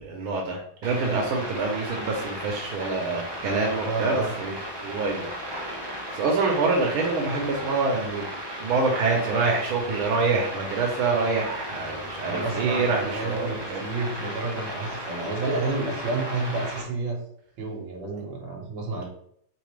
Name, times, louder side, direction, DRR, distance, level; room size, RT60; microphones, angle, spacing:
voice 1, 0.0-4.5 4.8-5.3 5.6-5.7 6.1-8.3 8.6-13.8, right 3 dB, 85° right, 0 dB, 1.6 m, -26 dB
sound 1, 0.8-16.8, equal, 35° right, 0.4 m, -35 dB
voice 2, 3.8-4.3 12.3-17.2 17.6-19.0, right 3 dB, 65° right, 0 dB, 1.8 m, -30 dB
4.0 x 3.9 x 3.2 m, 0.69 s
omnidirectional pair, 2.2 m